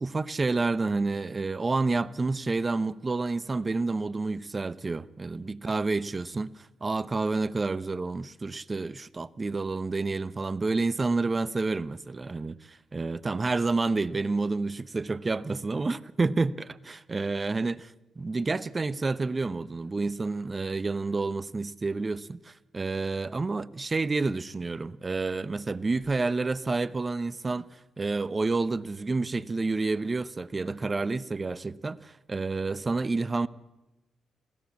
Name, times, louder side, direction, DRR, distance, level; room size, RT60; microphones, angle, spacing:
voice 1, 0.0-33.5, right 3 dB, 30° right, 0.8 m, -29 dB
26.5 x 16.0 x 7.3 m
supercardioid pair, 55°, 0 cm